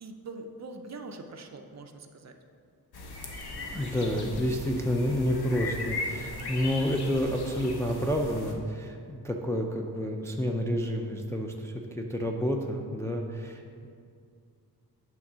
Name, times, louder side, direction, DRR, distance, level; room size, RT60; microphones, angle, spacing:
voice 1, 0.0-2.4 3.6-4.0, right 3 dB, 40° right, 5 dB, 0.6 m, -43 dB
sound 1, 2.9-8.5, left 2 dB, 70° left, 1.0 m, -38 dB
voice 2, 3.7-13.9, equal, 5° left, 1 dB, 0.4 m, -29 dB
8.9 x 3.6 x 6.0 m, 2.3 s
wide cardioid pair, 145°, 40 cm